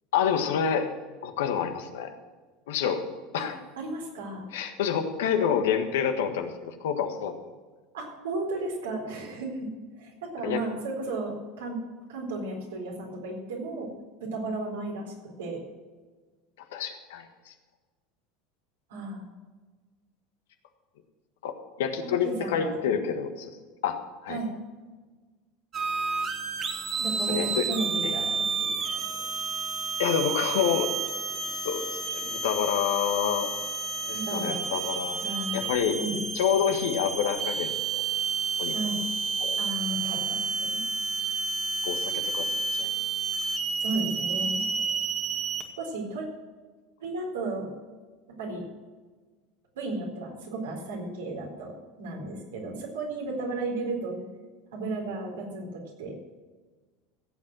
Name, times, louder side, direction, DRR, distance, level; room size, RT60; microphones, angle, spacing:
voice 1, 0.1-0.9 1.2-2.1 2.7-3.0 3.3-3.5 4.5-7.3 10.4-10.6 16.7-17.5 21.4-23.5 23.8-24.4 27.3-27.7 28.0-28.1 30.0-31.3 31.6-33.5 34.0-35.2 35.5-36.0 36.3-38.0 38.6-38.7 39.4-39.6 41.8-42.9, left 8 dB, 80° left, 6 dB, 1.5 m, -28 dB
voice 2, 3.8-4.4 7.9-9.7 10.0-11.8 12.1-13.9 14.2-15.6 18.9-19.3 22.0-22.9 24.3-24.5 27.0-29.0 34.1-34.6 35.2-35.6 36.0-36.2 38.7-39.0 39.6-40.8 43.8-44.7 45.8-46.3 47.0-47.7 48.4-48.6 49.7-54.2 54.7-56.1, right 2 dB, 85° right, 0 dB, 4.2 m, -34 dB
sound 1, 25.7-45.6, right 4 dB, 40° right, 2.1 m, -30 dB
16.0 x 7.9 x 6.2 m, 1.3 s
hypercardioid pair, 90°, 0 cm